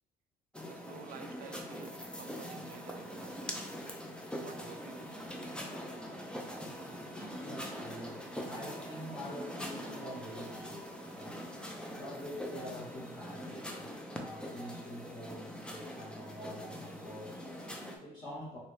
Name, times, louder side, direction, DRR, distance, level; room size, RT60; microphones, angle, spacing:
sound 1, 0.5-18.0, equal, 5° left, 0.4 m, -43 dB
voice 1, 0.7-3.4 4.4-5.1, right 8 dB, 60° right, 9 dB, 0.4 m, -52 dB
voice 2, 6.4-18.6, equal, 25° left, -7 dB, 1.1 m, -47 dB
2.9 x 2.7 x 3.0 m, 0.84 s
cardioid pair, 110°, 17 cm